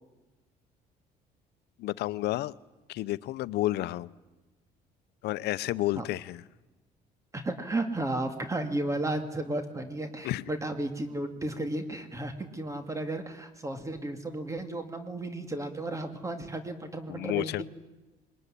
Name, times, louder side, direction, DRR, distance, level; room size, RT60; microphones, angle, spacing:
voice 1, 1.8-2.6 2.9-4.1 5.2-6.4 10.2-10.5 17.1-17.6, left 16 dB, 75° left, 0.7 m, -31 dB
voice 2, 7.3-17.6, right 2 dB, 20° right, 2.3 m, -33 dB
21.5 x 20.5 x 10.0 m
cardioid pair, 110°, 17 cm